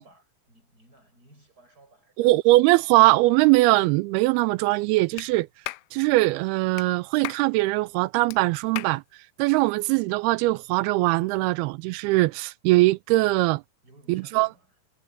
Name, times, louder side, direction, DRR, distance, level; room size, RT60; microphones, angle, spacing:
voice 1, 0.0-2.3 13.8-14.7, right 1 dB, 20° right, 7.7 m, -57 dB
voice 2, 2.2-5.5 5.9-9.0 9.4-13.6 14.1-14.5, right 21 dB, 85° right, 2.4 m, -21 dB
Clapping, 5.2-5.3 5.6-5.9 6.8-6.9 7.2-7.5 8.3-8.4 8.8-9.0, left 20 dB, 85° left, 2.1 m, -34 dB
omnidirectional pair, 4.7 m